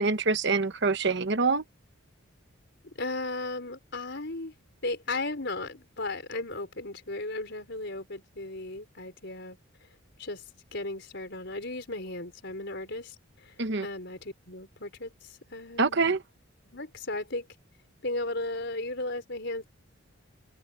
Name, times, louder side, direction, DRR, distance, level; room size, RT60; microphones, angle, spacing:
voice 1, 0.0-1.6 13.6-13.8 15.8-16.2, right 4 dB, 55° right, 1.0 m, -25 dB
voice 2, 2.8-4.5 4.8-9.9 10.2-10.4 10.7-16.0 16.7-17.5 18.0-19.7, left 2 dB, 55° left, 5.1 m, -36 dB
open air
head